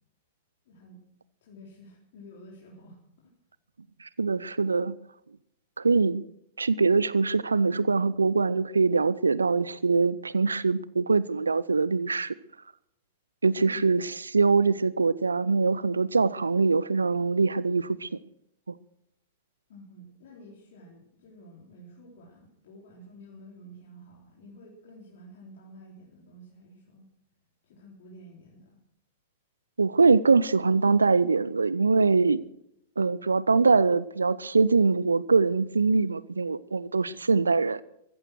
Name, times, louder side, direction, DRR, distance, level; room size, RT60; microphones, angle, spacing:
voice 1, 0.7-1.0 1.4-3.0 13.6-13.9 19.7-27.1 27.6-28.8 32.4-32.5, equal, 55° left, 3.9 m, -50 dB
voice 2, 4.0-4.9 5.8-6.2 6.6-12.3 13.4-18.2 29.8-32.4 33.0-37.8, right 4 dB, 80° right, 0.5 m, -23 dB
15.0 x 15.0 x 6.3 m
figure-of-eight pair, 100°, 0 cm